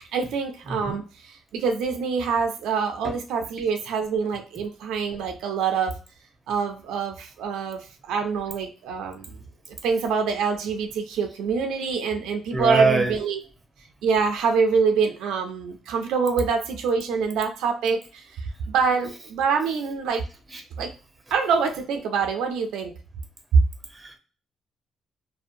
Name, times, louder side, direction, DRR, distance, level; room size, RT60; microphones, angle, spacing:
voice 1, 0.1-5.9 6.5-9.4 9.8-13.4 14.0-20.2 20.8-20.9 21.3-22.9 23.5-23.6, right 5 dB, 90° right, 4 dB, 0.4 m, -25 dB
voice 2, 0.7-1.0 3.0-3.2 12.5-13.2 20.5-20.6 23.9-24.2, right 3 dB, 15° right, 4 dB, 0.7 m, -23 dB
2.7 x 2.1 x 2.4 m, 0.34 s
cardioid pair, 90°, 0 cm